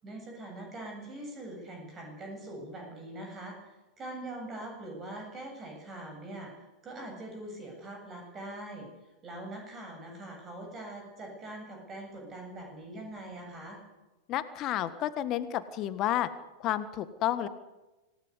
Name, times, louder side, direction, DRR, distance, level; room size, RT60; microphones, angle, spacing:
voice 1, 0.0-8.9 9.2-13.8, right 1 dB, 25° right, 2 dB, 7.9 m, -43 dB
voice 2, 14.3-16.3 16.6-17.5, left 12 dB, 35° left, 12 dB, 1.6 m, -31 dB
26.5 x 18.0 x 8.2 m, 1.1 s
figure-of-eight pair, 90°, 0 cm